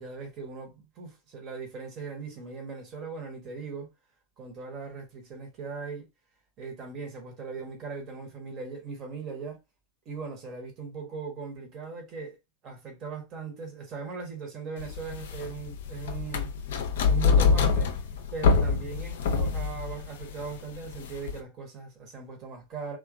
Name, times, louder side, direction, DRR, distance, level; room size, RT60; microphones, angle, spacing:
voice 1, 0.0-3.9 4.4-6.1 6.6-9.6 10.0-12.4 12.6-16.6 17.0-17.9 18.3-23.0, right 5 dB, 35° right, 1.1 m, -39 dB
sound 1, 14.8-21.4, left 5 dB, 55° left, 0.4 m, -26 dB
2.9 x 2.4 x 2.4 m
figure-of-eight pair, 90°, 0 cm